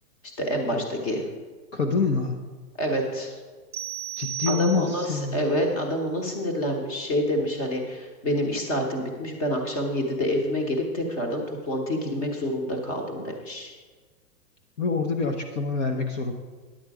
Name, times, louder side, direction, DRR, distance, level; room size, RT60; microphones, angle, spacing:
voice 1, 0.4-1.2 2.8-3.3 4.5-13.7, equal, 20° left, 3 dB, 1.0 m, -27 dB
voice 2, 1.7-2.4 4.2-5.4 14.8-16.3, left 4 dB, 45° left, 3 dB, 0.8 m, -26 dB
sound 1, 3.7-5.3, right 12 dB, 30° right, 0.5 m, -34 dB
10.5 x 7.9 x 4.8 m, 1.4 s
hypercardioid pair, 170°, 49 cm